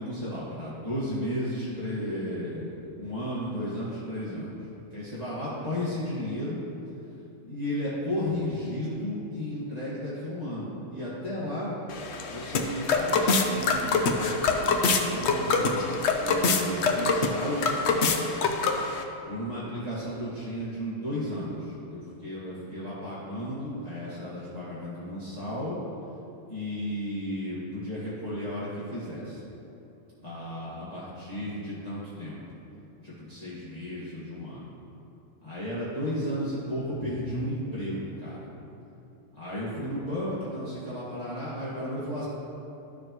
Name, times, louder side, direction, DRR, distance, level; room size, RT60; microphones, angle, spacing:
voice 1, 0.0-6.6 7.4-11.8 12.3-18.2 19.2-25.8 26.5-29.4 30.2-32.4 33.0-34.7 35.4-38.5 39.3-42.3, equal, 30° left, -12 dB, 1.8 m, -34 dB
sound 1, 11.9-19.0, left 4 dB, 60° left, 0.8 m, -25 dB
12.5 x 6.5 x 3.0 m, 2.9 s
omnidirectional pair, 1.5 m